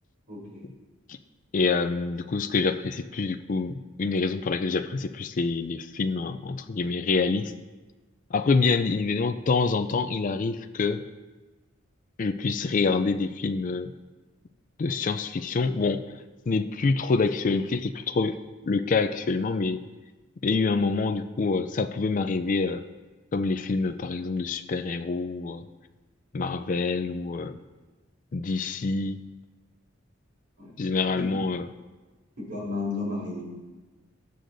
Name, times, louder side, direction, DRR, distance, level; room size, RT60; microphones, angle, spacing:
voice 1, 0.3-0.7 30.6-30.8 31.2-31.4 32.4-33.4, left 3 dB, 60° right, -4 dB, 3.7 m, -33 dB
voice 2, 1.5-7.5 8.3-11.0 12.2-13.9 14.8-16.0 16.5-18.4 18.7-19.8 20.4-22.8 23.3-25.6 26.3-27.6 28.3-29.2 30.8-31.7, left 4 dB, 40° left, 8 dB, 0.4 m, -26 dB
20.5 x 7.8 x 2.6 m, 1.2 s
head